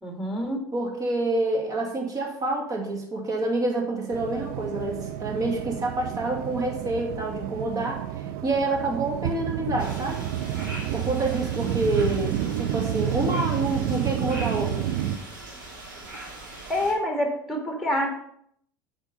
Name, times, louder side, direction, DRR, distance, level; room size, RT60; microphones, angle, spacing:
voice 1, 0.0-0.6 16.7-18.1, left 1 dB, ahead, 1 dB, 2.2 m, -26 dB
voice 2, 0.7-10.2 10.9-14.9, right 2 dB, 35° right, 0 dB, 2.2 m, -27 dB
sound 1, 4.1-15.2, right 11 dB, 65° right, 0.5 m, -30 dB
sound 2, 9.8-16.9, right 1 dB, 80° right, 2.4 m, -41 dB
8.1 x 3.8 x 5.1 m, 0.68 s
hypercardioid pair, 75°, 10 cm